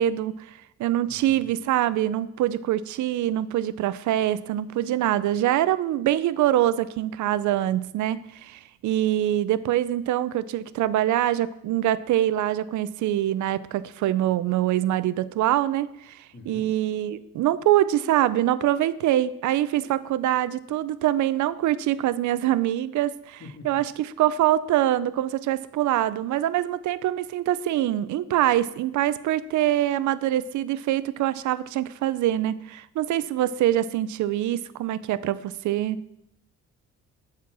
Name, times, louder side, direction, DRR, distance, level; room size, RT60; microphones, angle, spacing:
voice 1, 0.0-36.0, right 13 dB, 75° right, 16 dB, 0.6 m, -24 dB
voice 2, 1.1-1.5 16.3-16.7 23.4-23.8, left 3 dB, 40° left, 3 dB, 2.2 m, -44 dB
11.0 x 4.4 x 6.1 m, 0.83 s
cardioid pair, 90°, 30 cm